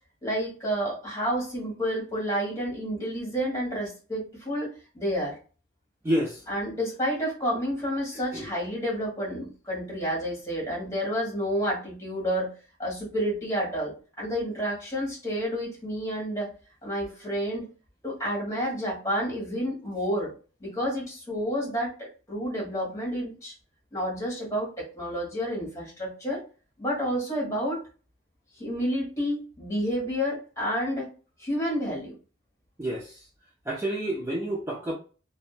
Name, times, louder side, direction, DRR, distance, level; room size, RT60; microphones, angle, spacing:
voice 1, 0.2-5.4 6.5-12.5 12.8-16.5 16.8-17.7 18.0-20.3 20.6-23.5 23.9-26.4 26.8-27.8 28.6-31.1 31.4-32.1, equal, 15° left, 1.3 m, -30 dB
voice 2, 6.0-6.4 8.3-8.5 32.8-33.2 33.7-34.9, right 1 dB, 15° right, 0.3 m, -29 dB
2.7 x 2.2 x 2.4 m
head